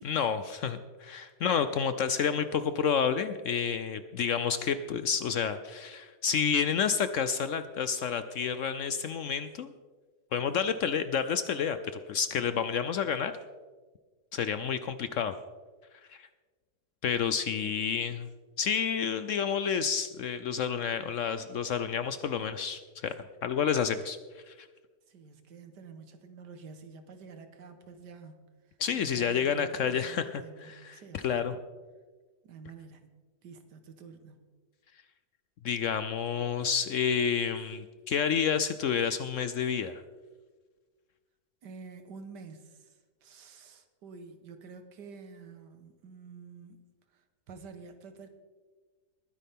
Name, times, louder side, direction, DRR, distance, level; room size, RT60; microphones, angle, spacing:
voice 1, 0.0-9.7 10.3-11.8 12.1-13.3 14.3-15.3 16.1-16.3 17.0-18.3 18.6-23.1 23.4-24.2 24.5-24.7 28.8-30.3 30.8-31.5 35.6-40.0, left 7 dB, 65° left, 11 dB, 0.8 m, -29 dB
voice 2, 25.1-31.6 32.4-33.1 33.4-34.4 41.6-46.8 47.1-48.3, right 5 dB, 90° right, 8 dB, 1.8 m, -49 dB
21.0 x 9.9 x 3.6 m, 1.4 s
omnidirectional pair, 1.8 m